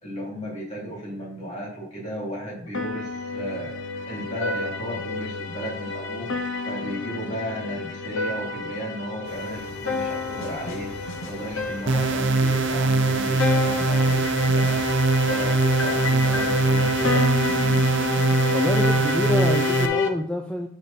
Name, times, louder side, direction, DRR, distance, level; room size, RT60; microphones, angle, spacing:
voice 1, 0.0-3.8 4.1-6.3 6.6-10.9 11.2-14.8 15.3-18.1, equal, 35° left, -4 dB, 3.2 m, -35 dB
sound 1, 2.7-20.1, left 4 dB, 90° left, 0.9 m, -29 dB
sound 2, 9.2-18.0, left 1 dB, 55° left, 1.2 m, -42 dB
sound 3, 11.9-19.9, right 3 dB, 70° right, 0.7 m, -22 dB
voice 2, 18.5-20.7, left 1 dB, 5° left, 3 dB, 0.4 m, -27 dB
7.4 x 5.0 x 4.2 m, 0.63 s
head